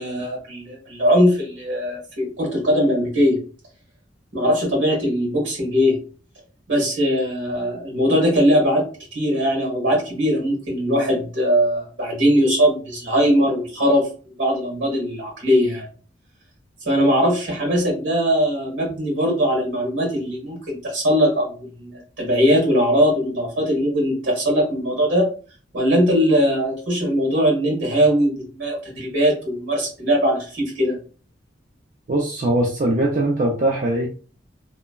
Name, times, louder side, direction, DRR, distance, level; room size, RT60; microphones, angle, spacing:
voice 1, 0.0-3.4 4.3-6.0 6.7-8.9 9.1-14.1 14.4-15.9 16.8-25.3 25.7-30.9, equal, 80° right, -1 dB, 1.4 m, -20 dB
voice 2, 32.1-34.1, right 1 dB, 45° right, 0 dB, 0.4 m, -21 dB
3.1 x 2.1 x 2.2 m, 0.39 s
head